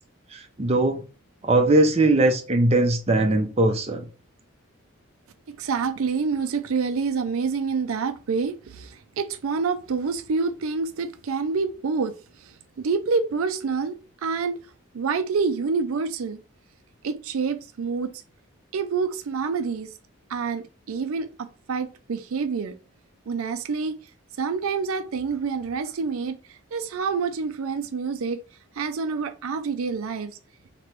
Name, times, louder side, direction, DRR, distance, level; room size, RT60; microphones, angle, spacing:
voice 1, 0.3-1.0 1.4-4.1, right 2 dB, 30° right, 0.6 m, -20 dB
voice 2, 5.5-14.6 14.9-16.4 17.0-18.1 18.7-19.9 20.3-22.7 23.3-23.9 24.4-28.4 28.7-30.4, right 5 dB, 75° right, 0.4 m, -27 dB
3.0 x 2.9 x 4.5 m
head